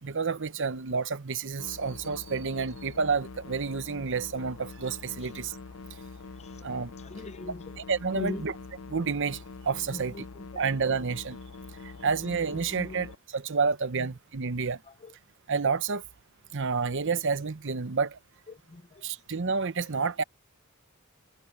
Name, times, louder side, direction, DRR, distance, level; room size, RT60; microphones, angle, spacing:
voice 1, 0.0-5.6 6.6-6.9 7.8-8.5 8.9-10.3 10.6-11.4 11.8-14.8 15.5-16.0 16.5-18.2 19.0-20.2, right 5 dB, 60° right, 0.9 m, -29 dB
sound 1, 1.6-13.2, left 4 dB, 80° left, 0.6 m, -44 dB
voice 2, 7.0-7.6 8.1-8.4 9.9-10.6 12.8-13.0 14.0-14.1 15.0-15.1 18.5-19.0, left 2 dB, 30° left, 0.6 m, -39 dB
head